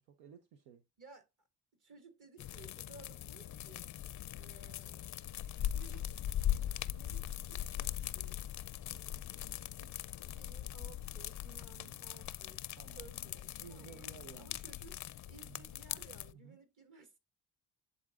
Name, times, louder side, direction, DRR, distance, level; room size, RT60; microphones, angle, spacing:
voice 1, 0.0-0.8 11.7-12.0 12.8-13.1 13.6-14.6 15.4-15.7 16.3-16.6, right 6 dB, 80° right, 0.8 m, -55 dB
voice 2, 1.0-1.5 1.8-3.9 4.4-5.1 5.6-8.4 8.9-12.6 12.9-14.0 14.4-15.0 15.3-17.2, right 4 dB, 45° right, 2.1 m, -58 dB
sound 1, 2.4-16.3, left 12 dB, 45° left, 0.5 m, -40 dB
11.0 x 3.9 x 2.4 m
hypercardioid pair, 55°, 43 cm